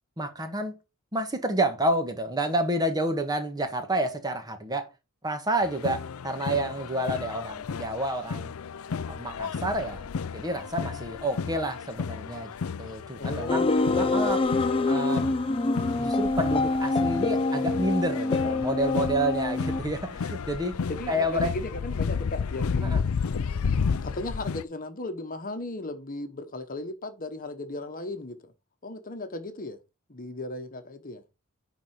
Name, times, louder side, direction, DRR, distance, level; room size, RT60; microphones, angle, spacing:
voice 1, 0.2-0.8 1.1-4.9 5.2-8.5 9.1-10.1 10.3-12.5 12.8-13.6 14.0-14.5 14.9-15.3 16.0-20.8 21.1-21.5 22.8-23.0, right 1 dB, 20° right, 1.5 m, -29 dB
sound 1, 5.6-24.6, left 5 dB, 75° left, 0.5 m, -33 dB
voice 2, 13.1-13.7 20.9-23.0 24.0-28.5 28.8-29.8 30.1-31.2, left 2 dB, 40° left, 1.2 m, -36 dB
sound 2, 13.5-19.8, left 3 dB, 25° left, 0.6 m, -26 dB
10.5 x 4.2 x 4.9 m
head